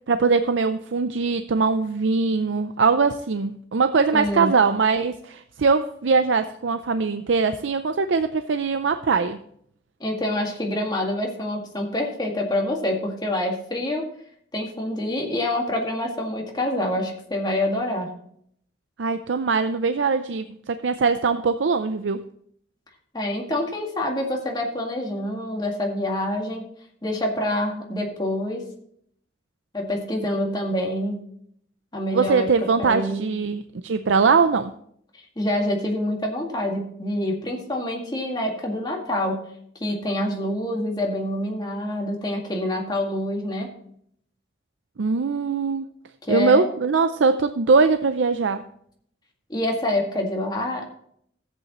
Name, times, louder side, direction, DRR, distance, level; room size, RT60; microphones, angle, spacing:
voice 1, 0.0-9.4 19.0-22.2 32.1-34.7 45.0-45.9 46.3-48.6, right 4 dB, 85° right, 10 dB, 0.5 m, -21 dB
voice 2, 4.1-4.5 10.0-14.0 14.5-18.1 23.1-26.7 27.0-28.7 29.7-31.2 31.9-33.3 35.4-39.5 39.8-43.7 46.3-46.7 49.5-51.0, left 1 dB, 25° left, 0 dB, 2.0 m, -26 dB
14.5 x 8.4 x 3.0 m, 0.67 s
head